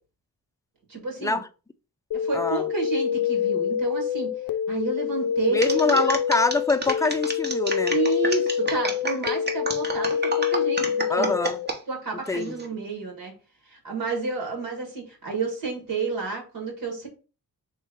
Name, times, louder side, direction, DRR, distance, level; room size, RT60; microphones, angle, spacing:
voice 1, 0.9-1.4 2.1-4.3 4.7-6.2 7.9-10.9 11.2-11.3 11.9-13.3 13.7-17.1, right 4 dB, 70° right, 1.6 m, -30 dB
sound 1, 2.1-11.7, left 9 dB, 70° left, 0.5 m, -26 dB
voice 2, 5.5-8.0 11.1-11.6 12.3-12.5, left 3 dB, 10° left, 0.3 m, -25 dB
sound 2, 5.6-11.8 12.3-12.7, right 2 dB, 30° right, 0.8 m, -30 dB
3.2 x 3.1 x 4.7 m
wide cardioid pair, 110°, 35 cm